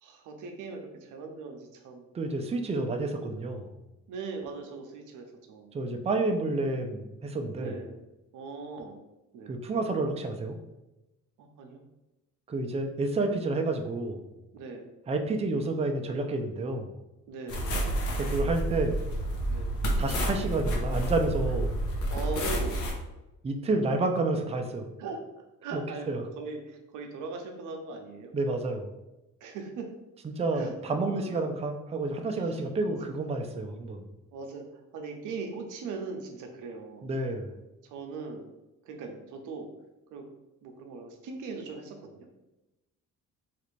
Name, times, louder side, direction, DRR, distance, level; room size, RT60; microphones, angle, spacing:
voice 1, 0.0-2.1 2.8-2.9 4.1-5.7 7.6-8.0 8.3-9.0 9.3-9.5 11.4-11.8 14.5-14.9 17.3-17.8 19.5-19.7 22.1-22.8 25.0-28.3 29.4-29.9 30.5-30.7 31.0-31.5 32.3-32.6 32.9-33.0 34.3-37.1 37.8-38.5 38.8-39.7 40.1-40.3 40.6-42.3, right 4 dB, 85° right, 3 dB, 0.6 m, -40 dB
voice 2, 2.1-3.7 5.7-7.8 9.5-10.6 12.5-14.2 15.1-16.9 18.1-19.0 20.0-21.7 23.4-24.9 25.7-26.2 28.3-28.9 30.2-34.1 37.0-37.5, right 2 dB, 20° right, 4 dB, 0.4 m, -30 dB
sound 1, 17.5-22.9, right 1 dB, 80° left, 0.7 m, -29 dB
3.3 x 2.5 x 3.1 m, 0.99 s
cardioid pair, 90°, 30 cm